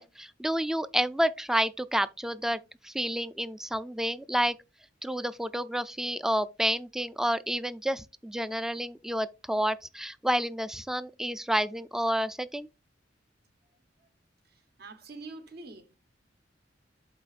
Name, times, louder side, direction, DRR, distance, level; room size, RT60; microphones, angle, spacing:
voice 1, 0.0-4.6 5.0-12.7, equal, 5° right, 0.3 m, -30 dB
voice 2, 14.4-16.0, right 3 dB, 60° right, 1.0 m, -46 dB
12.0 x 4.2 x 2.4 m
head